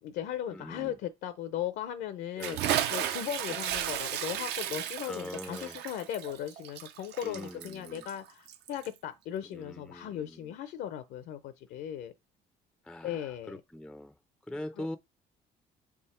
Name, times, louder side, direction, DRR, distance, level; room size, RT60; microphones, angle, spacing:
voice 1, 0.0-12.1 13.0-13.6 14.5-14.9, left 10 dB, 80° left, 0.7 m, -37 dB
voice 2, 0.5-1.0 2.4-2.6 3.5-3.6 5.0-5.8 7.2-8.1 9.4-10.5 12.8-14.1 14.5-15.0, left 1 dB, 5° left, 0.4 m, -42 dB
Bathtub (filling or washing) / Splash splatter, 2.4-9.0, right 10 dB, 80° right, 0.8 m, -34 dB
6.0 x 3.6 x 4.2 m
cardioid pair, 110°, 17 cm